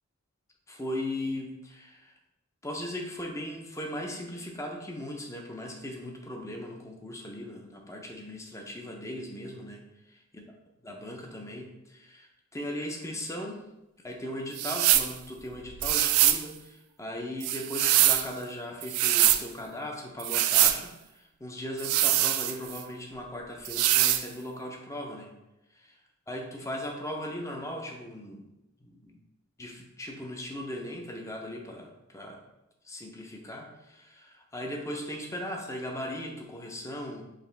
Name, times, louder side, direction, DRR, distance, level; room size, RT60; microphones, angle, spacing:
voice 1, 0.7-2.1 2.6-10.4 10.8-13.7 14.0-25.3 25.7-26.0 26.3-28.5 28.8-29.2 29.6-32.4 32.8-37.2, left 1 dB, 15° left, 1 dB, 0.5 m, -38 dB
sound 1, 14.6-15.1 15.8-16.4 17.4-18.3 18.8-19.4 20.2-20.8 21.8-22.8 23.6-24.2, right 13 dB, 90° right, 0.3 m, -23 dB
5.0 x 2.5 x 3.2 m, 0.91 s
head